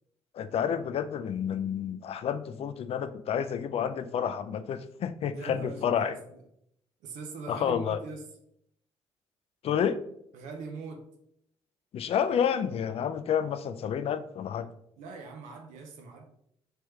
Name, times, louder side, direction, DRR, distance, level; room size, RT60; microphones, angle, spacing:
voice 1, 0.3-6.2 7.5-8.0 9.6-10.0 11.9-14.7, left 8 dB, 50° left, 12 dB, 0.4 m, -29 dB
voice 2, 5.3-6.4 7.0-8.3 10.3-11.1 15.0-16.2, right 4 dB, 75° right, 2 dB, 0.6 m, -42 dB
3.4 x 3.2 x 3.1 m, 0.73 s
hypercardioid pair, 55°, 13 cm